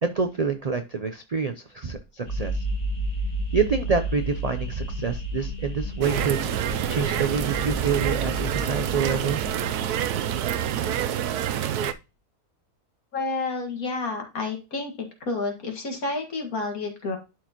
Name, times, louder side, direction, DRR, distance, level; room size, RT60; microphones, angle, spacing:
voice 1, 0.0-2.6 3.5-9.4, right 5 dB, 60° right, 8 dB, 0.4 m, -27 dB
sound 1, 2.2-11.5, equal, 25° left, 1.5 m, -32 dB
sound 2, 6.0-11.9, right 10 dB, 80° right, 1.2 m, -27 dB
voice 2, 13.1-17.2, left 3 dB, 65° left, 3 dB, 2.2 m, -30 dB
11.5 x 4.5 x 3.0 m, 0.28 s
omnidirectional pair, 1.6 m